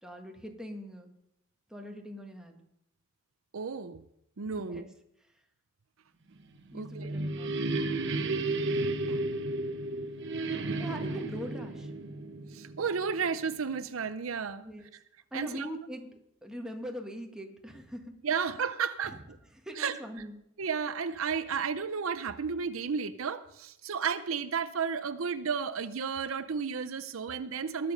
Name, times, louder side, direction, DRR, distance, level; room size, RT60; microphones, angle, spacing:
voice 1, 0.0-1.1 1.7-2.6 4.5-4.9 6.7-7.5 10.8-11.9 14.6-14.9 15.3-16.1 16.4-18.2 19.0-19.2 19.5-20.3, equal, 5° right, 2 dB, 1.6 m, -42 dB
voice 2, 3.5-4.0 4.4-4.9 6.7-7.1 9.1-9.2 10.9-11.0 12.5-14.7 15.3-15.7 18.2-19.2 19.8-19.9 20.6-27.9, right 6 dB, 80° right, 12 dB, 0.6 m, -33 dB
sound 1, 6.5-13.2, right 2 dB, 60° right, 1.1 m, -33 dB
20.5 x 6.9 x 5.3 m, 0.79 s
head